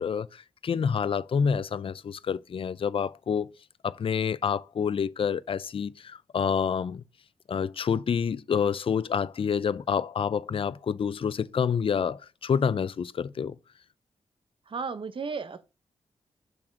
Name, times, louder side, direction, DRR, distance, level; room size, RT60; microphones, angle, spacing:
voice 1, 0.0-3.5 3.8-7.0 7.5-13.5, left 7 dB, 55° left, 0.5 m, -28 dB
voice 2, 14.7-15.6, right 5 dB, 50° right, 0.9 m, -34 dB
6.8 x 3.5 x 5.8 m
cardioid pair, 55°, 11 cm